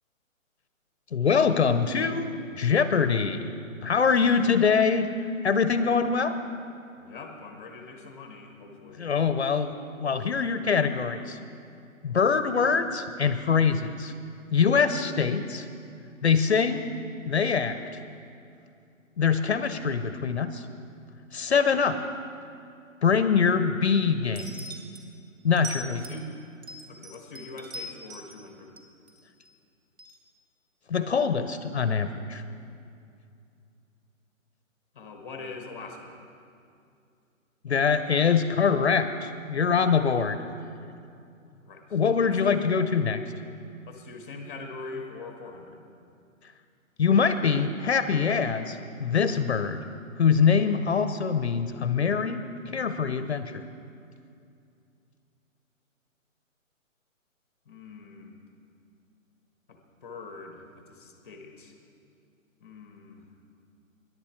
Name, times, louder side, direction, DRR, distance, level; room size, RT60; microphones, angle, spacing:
voice 1, 1.1-3.5 3.8-5.1 5.4-6.4 9.0-9.7 10.0-11.4 12.0-14.1 14.5-15.7 16.2-16.9 17.3-17.8 19.2-20.6 21.3-22.0 23.0-24.6 25.4-26.0 30.9-32.4 37.6-40.4 41.9-43.2 47.0-49.8 50.2-52.4 52.7-53.5, left 6 dB, 50° left, 10 dB, 0.6 m, -24 dB
voice 2, 7.0-9.1 25.9-26.3 26.9-28.7 34.9-36.2 41.4-41.9 42.2-42.7 43.9-45.9 57.7-58.3 59.7-61.7 62.6-63.3, left 3 dB, 10° left, 4 dB, 0.8 m, -43 dB
sound 1, 24.3-25.0 25.6-26.2 26.6-28.4 28.8-29.5 30.0-30.2, right 1 dB, 50° right, 1.8 m, -41 dB
22.0 x 11.0 x 4.4 m, 2.5 s
hypercardioid pair, 170°, 41 cm